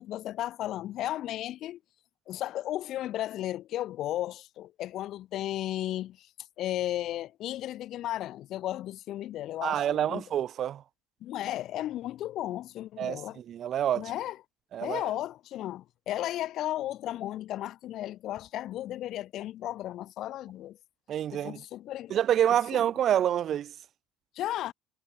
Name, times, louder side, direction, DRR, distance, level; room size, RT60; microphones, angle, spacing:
voice 1, 0.0-1.8 2.3-6.3 6.6-10.2 11.2-13.4 13.9-14.4 14.8-20.8 21.3-22.2 22.5-22.8 24.3-24.7, left 13 dB, 60° left, 6.5 m, -34 dB
voice 2, 9.6-10.8 13.0-13.2 13.5-14.1 14.7-15.0 21.1-21.6 22.1-23.7, right 10 dB, 50° right, 2.0 m, -27 dB
supercardioid pair, 105°, 0 cm